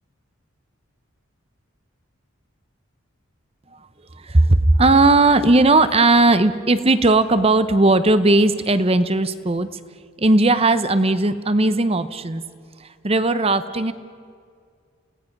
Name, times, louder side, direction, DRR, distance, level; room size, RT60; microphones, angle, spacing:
voice 1, 4.1-9.7 10.2-12.4 12.8-13.9, right 2 dB, 30° right, 12 dB, 0.8 m, -17 dB
29.0 x 17.5 x 6.0 m, 2.2 s
head